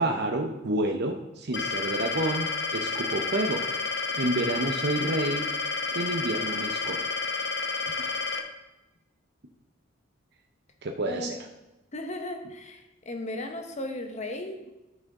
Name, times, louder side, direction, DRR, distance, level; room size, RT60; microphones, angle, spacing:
voice 1, 0.0-3.6 4.1-5.4 5.9-7.0 8.0-8.1 10.8-11.4, right 1 dB, 60° right, 4 dB, 0.7 m, -29 dB
sound 1, 1.5-8.4, left 4 dB, 60° left, 1.0 m, -30 dB
voice 2, 11.9-14.6, left 1 dB, 35° left, 5 dB, 1.0 m, -36 dB
13.0 x 5.3 x 3.7 m, 1.0 s
head